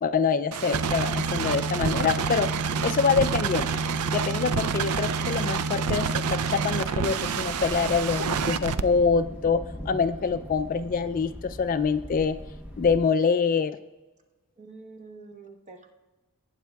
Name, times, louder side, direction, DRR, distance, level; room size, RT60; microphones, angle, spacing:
voice 1, 0.0-2.5 2.8-3.7 4.1-12.4 12.8-13.8, left 5 dB, 40° left, 11 dB, 0.3 m, -25 dB
sound 1, 0.5-8.8, right 5 dB, 85° right, 0.5 m, -27 dB
Thunder, 7.3-13.0, equal, 5° right, 0.9 m, -40 dB
voice 2, 14.6-15.9, right 3 dB, 30° right, 4 dB, 1.1 m, -46 dB
19.0 x 9.3 x 2.3 m, 1.2 s
head